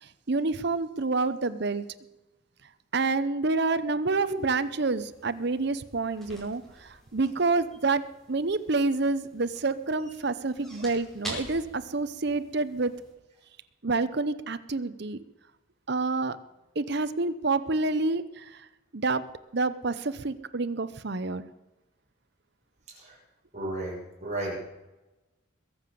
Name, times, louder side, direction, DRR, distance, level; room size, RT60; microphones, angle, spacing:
voice 1, 0.0-1.9 2.9-8.0 8.3-12.9 13.8-15.2 15.9-16.4 16.8-18.7 18.9-19.2 19.5-21.4, right 3 dB, 55° right, 13 dB, 0.8 m, -28 dB
sound 1, 4.2-13.1, right 1 dB, ahead, 4.9 m, -47 dB
voice 2, 23.5-24.6, right 1 dB, 35° right, -4 dB, 6.3 m, -34 dB
21.5 x 7.8 x 6.9 m, 1.0 s
head